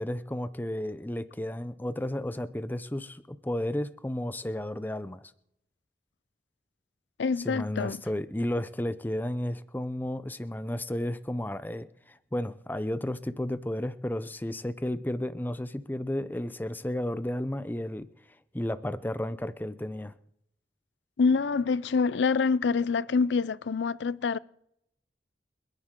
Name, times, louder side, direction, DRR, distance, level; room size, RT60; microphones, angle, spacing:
voice 1, 0.0-5.3 7.4-18.1 18.5-20.1, left 1 dB, 10° left, 0.6 m, -33 dB
voice 2, 7.2-8.0 21.2-24.4, left 4 dB, 90° left, 0.5 m, -26 dB
29.0 x 10.5 x 3.8 m
head